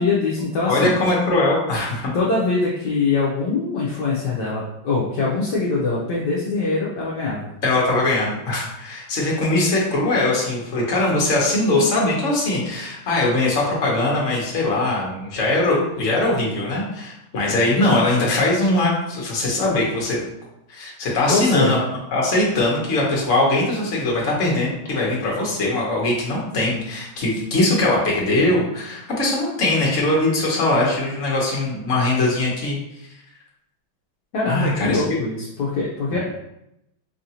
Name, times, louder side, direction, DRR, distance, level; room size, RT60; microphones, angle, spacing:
voice 1, 0.0-0.9 2.1-7.5 21.3-21.8 34.3-36.2, left 3 dB, 70° left, -5 dB, 1.1 m, -23 dB
voice 2, 0.7-2.1 7.6-20.2 20.7-21.8 22.1-33.1 34.4-35.2 36.1-36.2, left 2 dB, 45° left, -4 dB, 1.1 m, -21 dB
4.8 x 2.5 x 2.8 m, 0.83 s
omnidirectional pair, 2.3 m